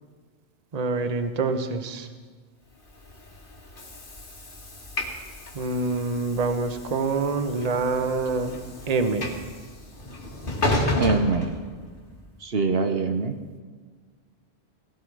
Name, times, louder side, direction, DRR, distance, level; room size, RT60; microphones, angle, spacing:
voice 1, 0.7-2.1 5.5-8.6 8.9-9.3, right 3 dB, 40° right, 7 dB, 1.0 m, -26 dB
Train / Sliding door, 2.9-12.2, left 1 dB, 50° left, 2.0 m, -32 dB
voice 2, 11.0-11.6 12.4-13.3, right 3 dB, 65° right, 7 dB, 1.2 m, -24 dB
18.0 x 16.0 x 4.8 m, 1.5 s
omnidirectional pair, 1.1 m